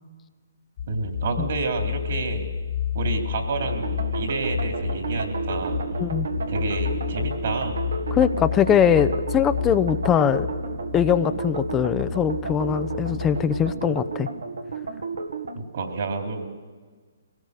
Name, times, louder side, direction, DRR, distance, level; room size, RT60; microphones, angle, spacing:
sound 1, 0.8-13.7, left 9 dB, 45° left, 1.4 m, -31 dB
voice 1, 0.9-2.4 2.9-5.8 6.5-7.8 13.9-14.0 15.5-16.5, right 3 dB, 55° right, 3 dB, 3.3 m, -29 dB
sound 2, 3.6-15.6, right 4 dB, 75° right, 1.8 m, -32 dB
voice 2, 8.1-10.5 10.9-14.3, left 8 dB, 20° left, 12 dB, 0.7 m, -21 dB
22.0 x 18.0 x 6.7 m, 1.5 s
hypercardioid pair, 135°, 0 cm